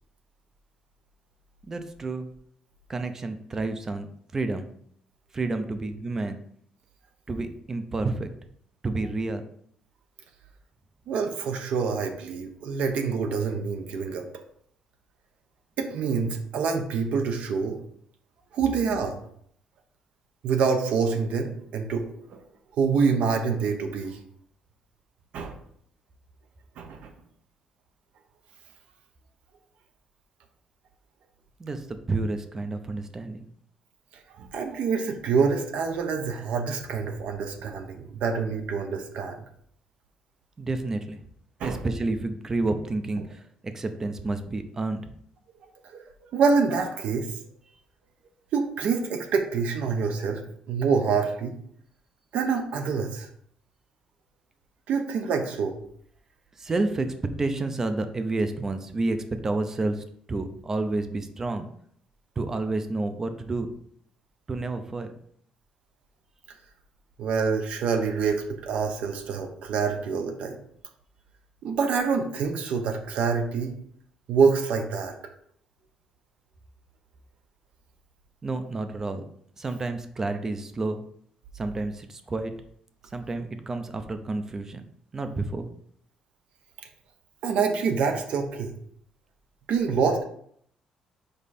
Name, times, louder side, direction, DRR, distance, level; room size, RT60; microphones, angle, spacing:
voice 1, 1.6-2.3 2.9-4.7 5.3-6.4 7.3-8.3 8.8-9.4 31.6-33.5 40.6-41.2 41.6-45.0 56.6-57.1 57.4-61.7 62.4-63.7 64.5-65.1 78.4-79.2 79.6-81.0 81.5-82.5 83.1-84.8 85.1-85.7, right 2 dB, 20° right, 8 dB, 0.6 m, -30 dB
voice 2, 11.1-14.3 15.8-17.8 18.5-19.2 20.4-22.4 22.7-24.2 25.3-25.6 26.8-27.1 34.3-39.4 41.6-41.8 45.8-47.4 48.5-50.4 50.7-51.5 52.3-53.3 54.9-55.8 67.2-70.6 71.6-73.7 74.3-75.1 87.4-88.7 89.7-90.3, right 5 dB, 65° right, 5 dB, 0.8 m, -26 dB
5.4 x 4.7 x 4.2 m, 0.65 s
cardioid pair, 175°, 2 cm